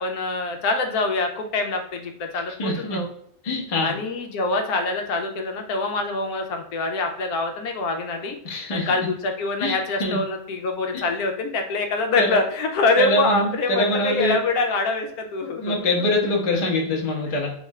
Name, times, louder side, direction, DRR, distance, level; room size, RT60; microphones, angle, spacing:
voice 1, 0.0-3.1 3.8-8.4 8.7-15.9, left 3 dB, 75° left, 4 dB, 1.0 m, -25 dB
voice 2, 2.6-3.0 3.4-3.9 8.4-8.9 9.6-10.2 10.9-11.0 12.2-12.4 13.0-14.4 15.6-17.5, left 1 dB, 35° left, -1 dB, 0.6 m, -24 dB
3.6 x 3.2 x 2.3 m, 0.69 s
omnidirectional pair, 1.7 m